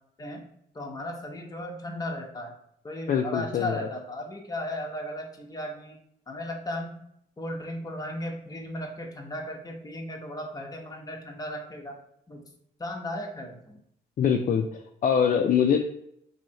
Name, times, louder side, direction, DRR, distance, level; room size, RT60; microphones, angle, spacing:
voice 1, 0.7-2.5 2.8-6.0 6.3-7.0 7.4-12.0 12.3-12.4 12.8-13.8, left 1 dB, 20° left, 1 dB, 0.9 m, -36 dB
voice 2, 3.1-3.9 14.2-15.8, left 7 dB, 40° left, 3 dB, 0.4 m, -24 dB
3.1 x 2.7 x 3.9 m, 0.73 s
cardioid pair, 90°, 20 cm